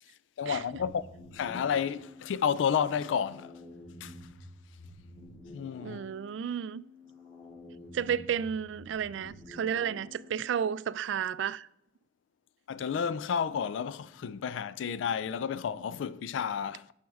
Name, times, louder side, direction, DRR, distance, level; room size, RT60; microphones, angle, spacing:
voice 1, 0.0-3.6 4.0-4.3 5.5-6.0 12.7-16.9, left 7 dB, 70° left, 0.3 m, -31 dB
sound 1, 0.7-10.6, left 2 dB, 40° left, 2.0 m, -50 dB
voice 2, 5.8-6.8 7.9-11.7, right 8 dB, 70° right, 0.3 m, -32 dB
9.3 x 6.4 x 3.5 m
head